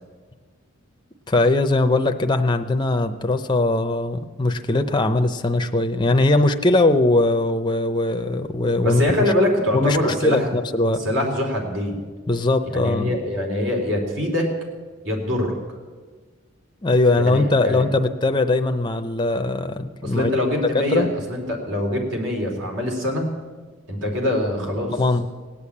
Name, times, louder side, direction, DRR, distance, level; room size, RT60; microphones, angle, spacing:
voice 1, 1.3-9.0 9.7-11.0 12.3-13.2 16.8-20.3 20.7-21.1 25.0-25.3, left 2 dB, 20° left, 7 dB, 0.6 m, -20 dB
voice 2, 8.8-10.5 11.0-12.0 12.6-14.5 15.0-15.5 17.3-17.8 20.0-23.3 23.9-25.0, left 1 dB, 70° right, 1 dB, 3.5 m, -23 dB
18.0 x 8.5 x 8.6 m, 1.4 s
head